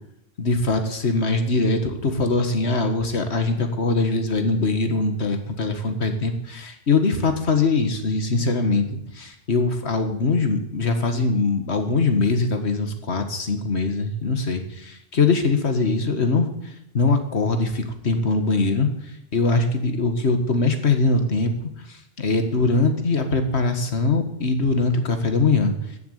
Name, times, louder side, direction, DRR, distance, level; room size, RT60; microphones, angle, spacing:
voice 1, 0.4-16.5 16.9-18.9 19.3-21.5 21.9-25.7, left 3 dB, 80° left, 6 dB, 2.0 m, -22 dB
14.5 x 7.0 x 9.2 m, 0.80 s
omnidirectional pair, 1.1 m